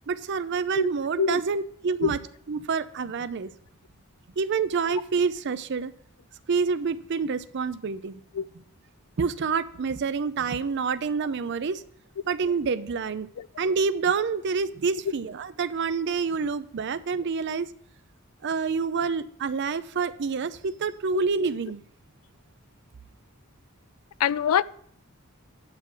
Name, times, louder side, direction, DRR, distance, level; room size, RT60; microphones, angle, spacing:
voice 1, 0.1-2.2 2.5-3.5 4.4-5.9 6.5-8.2 9.2-11.8 12.3-13.3 13.6-17.7 18.4-21.8, right 5 dB, 55° right, 0.5 m, -27 dB
voice 2, 24.2-24.6, left 8 dB, 80° left, 0.3 m, -24 dB
10.5 x 3.8 x 7.4 m
head